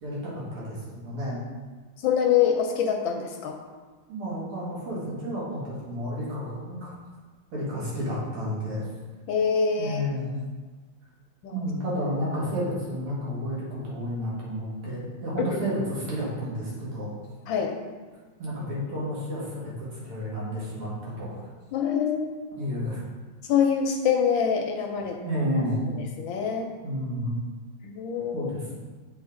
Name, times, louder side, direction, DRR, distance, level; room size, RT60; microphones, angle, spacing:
voice 1, 0.0-1.4 4.1-6.9 7.5-8.8 9.8-10.4 11.5-17.1 18.4-21.4 22.6-23.0 25.2-25.8 26.8-27.3 28.3-28.7, equal, 80° right, -6 dB, 2.7 m, -31 dB
voice 2, 2.0-3.6 9.3-10.0 11.4-11.7 15.4-15.5 17.5-17.7 21.7-22.4 23.5-25.2 26.2-26.7 27.8-28.5, left 7 dB, 75° left, 3 dB, 1.2 m, -25 dB
7.8 x 3.8 x 3.7 m, 1.4 s
omnidirectional pair, 2.4 m